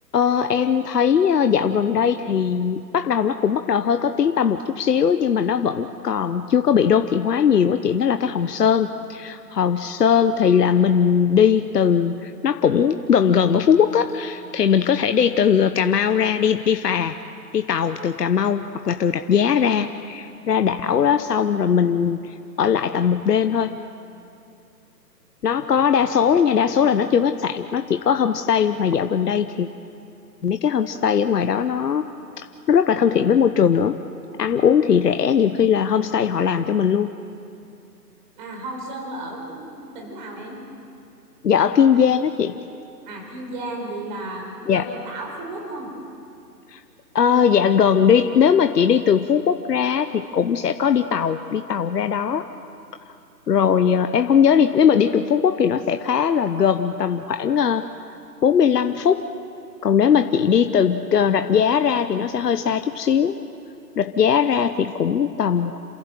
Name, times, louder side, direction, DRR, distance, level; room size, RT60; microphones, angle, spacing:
voice 1, 0.1-17.2 17.5-23.8 25.4-29.7 30.4-32.1 32.4-34.0 34.4-37.1 41.4-42.6 44.7-44.8 46.7-46.8 47.1-52.5 53.5-57.9 58.4-59.3 59.8-63.4 64.0-65.8, left 7 dB, 70° left, 9 dB, 1.0 m, -19 dB
voice 2, 38.4-40.6 43.1-45.9, right 2 dB, 30° right, 1 dB, 4.3 m, -34 dB
28.0 x 15.0 x 7.7 m, 2.6 s
hypercardioid pair, 155°, 49 cm